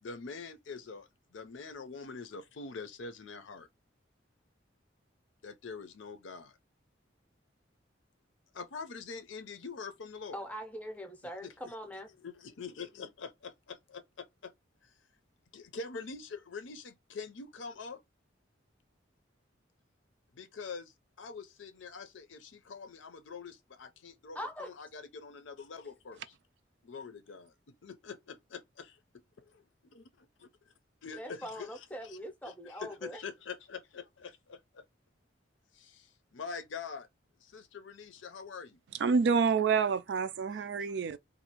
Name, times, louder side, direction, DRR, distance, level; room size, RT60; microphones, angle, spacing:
voice 1, 0.0-3.7 5.4-6.6 8.5-10.4 11.4-11.5 12.2-14.5 15.5-18.0 20.3-20.9 21.2-26.3 26.8-30.5 31.0-31.7 32.6-34.8 35.7-37.1 37.4-38.8 40.8-41.2, left 5 dB, 85° left, 0.6 m, -45 dB
voice 2, 10.3-12.1 24.3-24.7 31.1-33.2, equal, 10° left, 0.6 m, -42 dB
voice 3, 39.0-41.2, right 5 dB, 65° right, 0.3 m, -27 dB
2.7 x 2.4 x 2.9 m
head